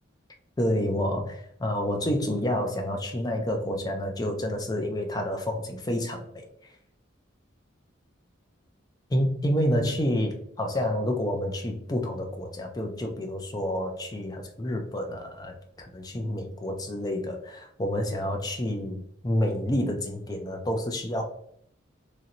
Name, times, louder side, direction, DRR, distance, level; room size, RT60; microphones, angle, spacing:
voice 1, 0.6-6.5 9.1-21.2, left 1 dB, 20° left, 3 dB, 0.4 m, -29 dB
3.0 x 2.6 x 2.8 m, 0.67 s
head